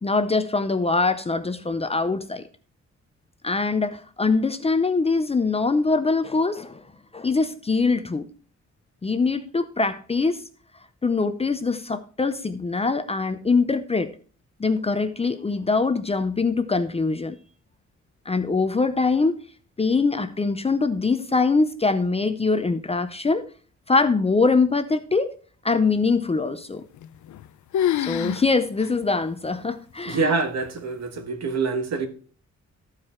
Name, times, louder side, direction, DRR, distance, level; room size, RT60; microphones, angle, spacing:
voice 1, 0.0-2.4 3.4-6.8 7.1-8.3 9.0-10.4 11.0-14.1 14.6-17.4 18.3-19.4 19.8-23.5 23.9-25.3 25.6-26.8 28.0-30.3, left 4 dB, 20° left, 0.5 m, -23 dB
sound 1, 27.0-27.5 27.7-28.5 28.8-28.9 29.6-29.7 30.4-30.8, left 11 dB, 80° left, 0.5 m, -26 dB
voice 2, 30.0-32.1, right 4 dB, 60° right, 1.4 m, -25 dB
14.0 x 4.9 x 4.3 m
wide cardioid pair, 155°, 29 cm